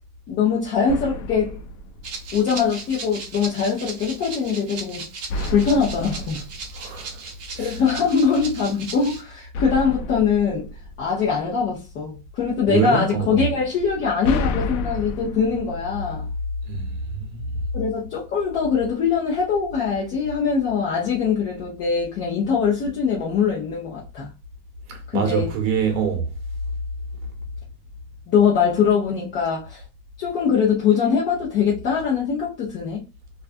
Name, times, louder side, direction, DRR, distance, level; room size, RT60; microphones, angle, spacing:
voice 1, 0.3-1.6 2.3-5.1 5.5-6.4 7.6-10.7 11.0-16.3 17.7-24.3 25.1-25.5 28.3-29.8 30.2-33.0, left 6 dB, 25° left, 0.4 m, -22 dB
sound 1, 0.9-2.7 5.3-7.7 9.5-11.8 13.8-16.8, left 2 dB, 80° left, 0.6 m, -32 dB
Rattle (instrument), 2.0-9.2, right 4 dB, 35° right, 0.7 m, -37 dB
voice 2, 6.8-7.2 7.6-7.7 12.7-13.5 16.7-17.5 24.9-26.3, right 6 dB, 60° right, 0.9 m, -25 dB
2.3 x 2.2 x 2.4 m
supercardioid pair, 150°, 44 cm